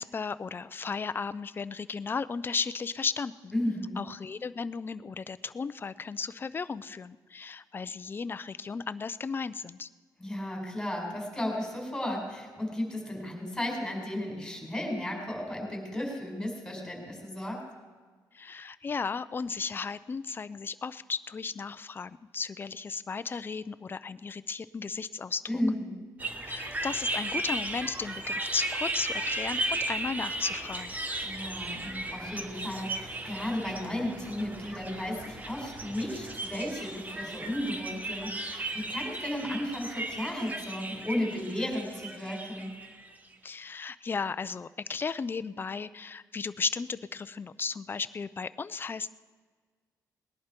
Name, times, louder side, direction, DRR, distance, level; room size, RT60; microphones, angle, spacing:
voice 1, 0.0-3.5 4.0-9.9 18.3-25.4 26.5-30.9 43.4-49.1, left 5 dB, 30° left, 14 dB, 0.5 m, -35 dB
voice 2, 3.5-4.0 10.2-17.6 25.5-26.0 31.2-42.7, left 1 dB, 5° left, -1 dB, 4.8 m, -34 dB
sound 1, 26.2-43.1, right 2 dB, 20° right, 1.1 m, -36 dB
19.5 x 11.0 x 4.5 m, 1.5 s
cardioid pair, 105°, 7 cm